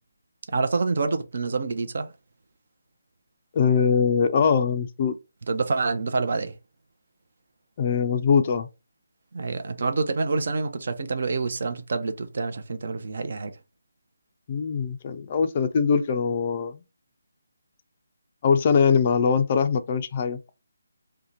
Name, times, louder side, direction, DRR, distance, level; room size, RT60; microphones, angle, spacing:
voice 1, 0.5-2.1 5.5-6.6 9.3-13.5, right 4 dB, 55° right, 0.5 m, -27 dB
voice 2, 3.5-5.2 7.8-8.7 14.5-16.8 18.4-20.4, left 6 dB, 35° left, 0.4 m, -22 dB
2.7 x 2.1 x 3.9 m
figure-of-eight pair, 150°, 0 cm